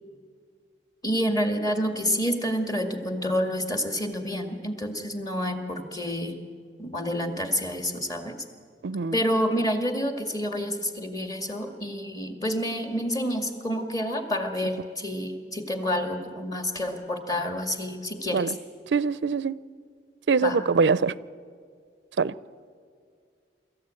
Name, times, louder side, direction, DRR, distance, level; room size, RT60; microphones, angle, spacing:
voice 1, 1.0-6.3 6.8-8.4 9.1-18.5 20.4-20.6, equal, 20° left, 2.0 m, -28 dB
voice 2, 8.8-9.2 18.3-18.6 18.9-19.6 20.3-21.2 22.2-22.4, right 4 dB, 80° right, 0.5 m, -23 dB
25.0 x 14.0 x 9.0 m
head